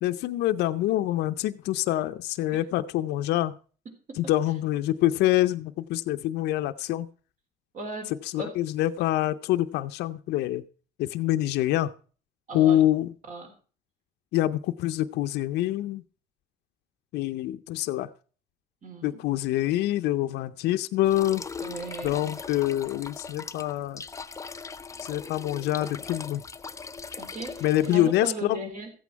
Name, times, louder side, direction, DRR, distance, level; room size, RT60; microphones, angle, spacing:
voice 1, 0.0-3.6 4.2-7.1 8.3-10.6 11.0-11.9 12.5-13.1 14.3-16.0 17.1-18.1 19.0-21.4 22.0-24.0 25.0-26.4 27.6-28.6, left 14 dB, 80° left, 10 dB, 0.6 m, -26 dB
voice 2, 7.7-8.1 8.4-8.5 12.5-12.8 13.3-13.5 18.8-19.2 21.6-22.3 27.2-28.9, right 2 dB, 50° right, 5 dB, 3.6 m, -37 dB
sound 1, 21.1-28.3, left 5 dB, 20° left, 0.6 m, -40 dB
14.5 x 8.4 x 4.6 m, 0.40 s
cardioid pair, 110°, 17 cm